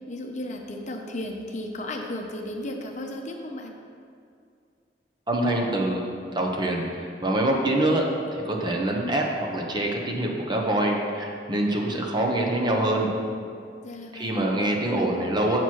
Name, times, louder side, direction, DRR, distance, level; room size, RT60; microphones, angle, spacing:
voice 1, 0.1-3.7 13.8-14.3, left 1 dB, 45° left, 2 dB, 0.7 m, -34 dB
voice 2, 5.3-6.0 6.3-13.1 14.1-15.6, right 1 dB, 25° right, 0 dB, 0.8 m, -25 dB
7.8 x 5.9 x 4.6 m, 2.3 s
head